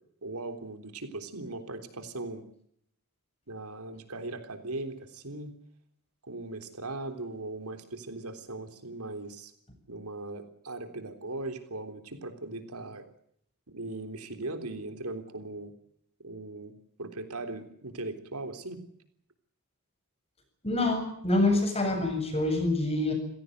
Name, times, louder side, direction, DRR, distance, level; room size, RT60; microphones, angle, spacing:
voice 1, 0.2-2.4 3.5-5.6 6.2-9.5 9.9-13.1 13.7-15.7 16.2-16.7 17.0-18.8, right 2 dB, 90° right, 8 dB, 3.6 m, -39 dB
voice 2, 20.6-23.1, left 2 dB, 30° left, 5 dB, 8.0 m, -26 dB
28.0 x 17.0 x 8.0 m, 0.70 s
head